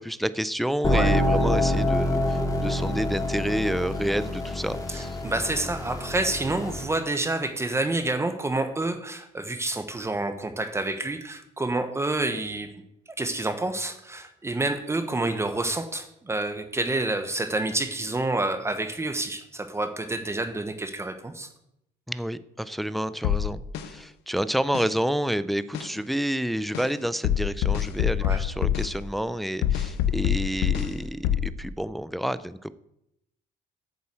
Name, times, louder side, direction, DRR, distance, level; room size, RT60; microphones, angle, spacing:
voice 1, 0.0-5.2 22.1-32.7, equal, ahead, 14 dB, 0.5 m, -29 dB
sound 1, 0.8-6.8, left 1 dB, 20° left, 2.2 m, -26 dB
voice 2, 4.9-12.7 13.2-21.5 28.2-28.4, right 2 dB, 15° right, 8 dB, 1.0 m, -28 dB
sound 2, 23.2-23.9 24.7-24.9 25.7-25.9 26.7-26.9 27.2-28.9 29.6-30.9 31.2-31.5, left 10 dB, 85° left, 0.8 m, -25 dB
8.9 x 6.9 x 7.6 m, 0.80 s
cardioid pair, 110°, 17 cm